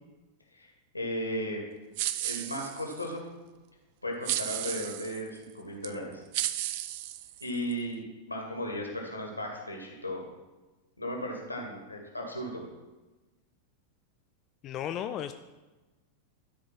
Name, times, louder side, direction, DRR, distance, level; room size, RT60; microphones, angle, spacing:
voice 1, 0.5-1.6 2.2-3.2 4.0-6.2 7.4-10.3 11.0-12.6, equal, 85° left, 1 dB, 2.0 m, -36 dB
sound 1, 2.0-3.1 4.2-5.2 5.8-5.9 6.3-7.7, right 13 dB, 50° right, 0.5 m, -33 dB
voice 2, 14.6-15.3, left 10 dB, 35° left, 9 dB, 0.4 m, -34 dB
12.0 x 4.9 x 6.0 m, 1.2 s
figure-of-eight pair, 90°, 0 cm